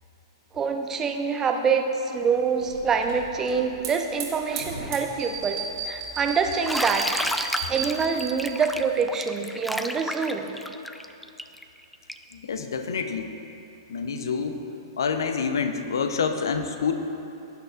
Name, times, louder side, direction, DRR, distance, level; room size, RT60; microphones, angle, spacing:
voice 1, 0.5-1.8 2.1-7.0 7.7-10.5, right 5 dB, 20° right, 4 dB, 0.8 m, -25 dB
Hiss / Fire, 2.2-9.0, right 4 dB, 60° right, 2.3 m, -42 dB
sound 1, 5.2-8.5, right 5 dB, 45° right, 2.3 m, -34 dB
Bathtub (filling or washing), 6.6-12.3, equal, ahead, 0.4 m, -31 dB
voice 2, 12.3-13.3 13.9-14.6 15.0-16.9, left 5 dB, 65° left, 7 dB, 0.8 m, -27 dB
18.0 x 10.0 x 2.5 m, 2.8 s
figure-of-eight pair, 105°, 2 cm